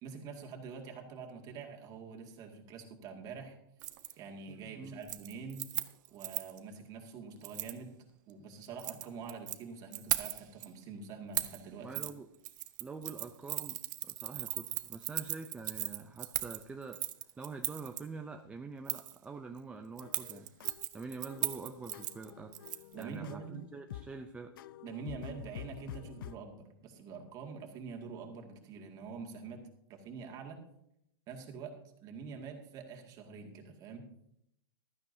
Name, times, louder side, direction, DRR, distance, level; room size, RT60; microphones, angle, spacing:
voice 1, 0.0-3.6 4.2-5.6 6.1-8.0 8.3-11.9 22.9-23.6 24.8-29.6 29.9-30.6 31.3-31.7 32.0-34.0, right 5 dB, 30° right, 2 dB, 2.1 m, -45 dB
Keys jangling, 3.8-4.1 4.5-4.7 5.0-6.6 7.4-7.8 8.6-9.6 9.9-10.7 11.3-11.6 11.9-12.1 12.4-18.0 18.9-19.2 20.0-23.0 23.3-23.4, right 16 dB, 55° right, 0.7 m, -38 dB
voice 2, 11.8-12.3 12.8-17.0 17.4-20.5 20.9-22.5 23.0-24.5, right 4 dB, 10° right, 4 dB, 0.4 m, -45 dB
sound 1, 20.0-26.4, left 12 dB, 65° left, 0.5 m, -48 dB
15.0 x 13.0 x 2.7 m, 0.77 s
hypercardioid pair, 145°, 12 cm